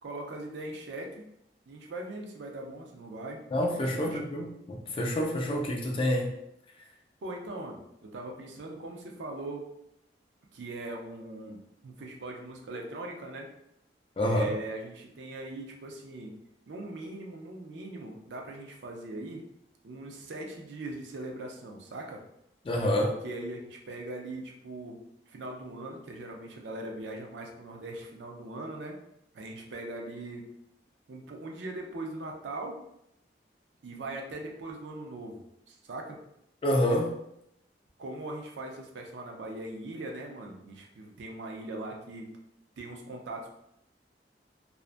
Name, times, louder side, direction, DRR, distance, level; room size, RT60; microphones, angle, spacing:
voice 1, 0.0-1.2 1.7-3.4 3.9-4.2 7.2-9.6 10.5-13.5 14.2-16.3 16.7-19.4 19.8-22.2 23.0-25.0 25.3-28.9 29.3-30.4 31.1-32.8 33.8-35.4 35.7-36.2 38.0-42.3 42.8-43.5, right 2 dB, 80° right, 1 dB, 0.5 m, -40 dB
voice 2, 3.5-6.3 14.2-14.5 22.7-23.1 36.6-37.2, equal, 30° left, 1 dB, 0.3 m, -27 dB
2.5 x 2.1 x 2.4 m, 0.79 s
head